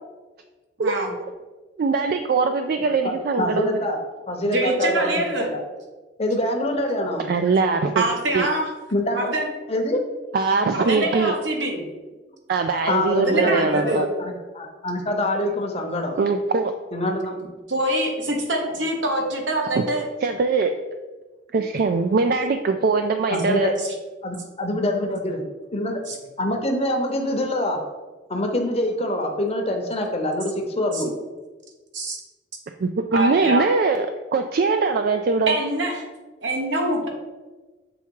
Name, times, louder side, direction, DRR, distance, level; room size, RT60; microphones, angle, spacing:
voice 1, 0.8-1.1 4.5-5.5 7.9-8.7 9.1-9.4 10.7-11.9 13.2-14.1 17.7-20.1 26.1-26.2 30.9-31.0 31.9-32.2 33.1-33.7 35.5-36.0 36.4-37.1, right 1 dB, 85° right, 1 dB, 1.3 m, -24 dB
voice 2, 1.8-3.8 7.3-8.5 10.3-11.3 12.5-14.1 16.2-16.7 19.8-19.9 20.2-20.7 21.5-23.7 32.8-34.1 34.3-35.5, right 4 dB, 55° right, 6 dB, 0.3 m, -22 dB
voice 3, 3.4-4.0 4.3-5.6 6.2-7.3 8.9-9.3 9.7-10.0 12.9-16.2 16.9-17.4 21.5-21.6 23.3-23.7 24.2-25.4 25.7-26.0 26.4-27.8 28.3-31.2, left 1 dB, 35° left, 4 dB, 0.8 m, -25 dB
7.1 x 3.5 x 4.6 m, 1.3 s
head